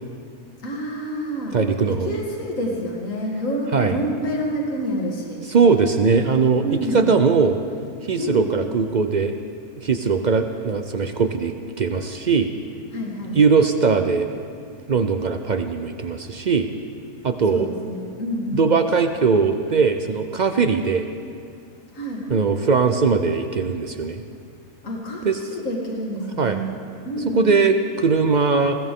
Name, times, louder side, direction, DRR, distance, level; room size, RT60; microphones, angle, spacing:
voice 1, 0.6-1.5 1.9-5.4 6.6-7.0 8.2-8.5 12.9-13.4 17.5-18.8 21.9-22.3 24.8-26.7 27.0-27.5, equal, 60° left, -2 dB, 2.4 m, -28 dB
voice 2, 1.5-2.2 3.7-3.9 5.5-6.7 6.9-7.6 8.0-9.3 9.8-12.5 13.3-14.3 14.9-16.7 17.2-17.7 18.5-21.1 22.3-24.2 25.2-25.4 26.4-26.6 27.3-28.8, right 5 dB, 60° right, 7 dB, 0.4 m, -20 dB
20.5 x 16.5 x 3.7 m, 2.3 s
omnidirectional pair, 1.6 m